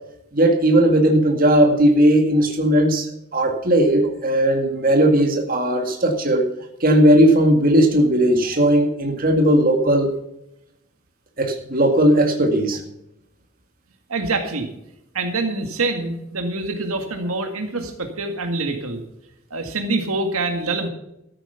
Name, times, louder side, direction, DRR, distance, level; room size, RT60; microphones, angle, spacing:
voice 1, 0.3-3.1 3.3-6.5 6.8-10.1 11.4-12.8, right 1 dB, 40° right, 3 dB, 2.0 m, -17 dB
voice 2, 14.1-14.7 15.1-19.0 19.5-20.9, right 3 dB, 80° right, 5 dB, 1.9 m, -25 dB
13.5 x 8.9 x 5.7 m, 0.82 s
head